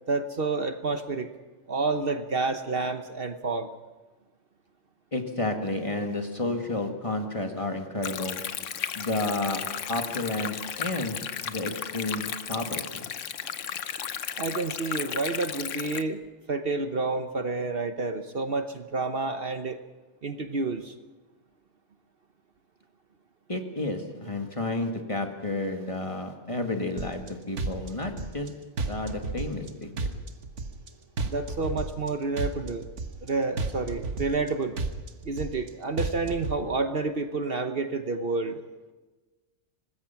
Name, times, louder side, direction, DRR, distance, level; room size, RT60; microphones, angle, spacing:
voice 1, 0.1-1.3 1.7-3.7 14.4-16.2 16.5-19.8 20.2-20.9 31.2-32.8 33.2-34.8 35.2-38.6, right 3 dB, 50° right, 8 dB, 1.1 m, -29 dB
voice 2, 5.1-8.4 9.0-9.6 9.9-11.2 11.4-13.0 23.5-28.5 28.8-29.9, left 2 dB, 25° left, 4 dB, 2.1 m, -31 dB
Stream, 8.0-16.0, left 8 dB, 85° left, 1.2 m, -34 dB
sound 1, 27.0-27.3 27.6-28.5 28.8-29.7 30.0-30.9 31.2-32.1 32.4-33.3 33.6-34.5 34.8-35.7 36.0-36.6, right 3 dB, 75° right, 1.7 m, -32 dB
25.0 x 20.0 x 5.9 m, 1.2 s
omnidirectional pair, 1.2 m